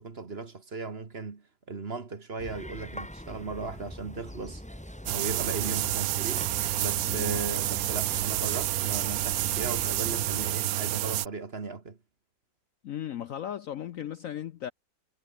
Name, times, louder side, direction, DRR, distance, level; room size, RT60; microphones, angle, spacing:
voice 1, 0.0-4.6 5.1-6.5 6.8-12.0, right 4 dB, 35° right, 1.8 m, -37 dB
sound 1, 2.4-10.6, equal, 5° left, 2.5 m, -43 dB
sound 2, 5.1-11.3, right 14 dB, 70° right, 0.9 m, -29 dB
voice 2, 7.0-7.4 12.8-14.7, left 10 dB, 60° left, 0.9 m, -36 dB
omnidirectional pair, 1.9 m